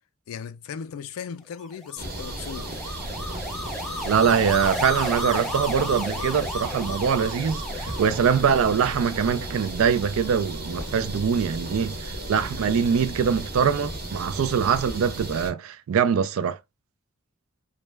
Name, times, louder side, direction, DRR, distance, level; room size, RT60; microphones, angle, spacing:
voice 1, 0.3-2.7, left 7 dB, 80° left, 0.3 m, -37 dB
sound 1, 1.7-11.0, left 1 dB, ahead, 0.5 m, -34 dB
sound 2, 2.0-15.5, right 1 dB, 45° right, 0.8 m, -35 dB
voice 2, 4.1-16.6, right 7 dB, 80° right, 0.4 m, -23 dB
2.2 x 2.0 x 3.2 m
head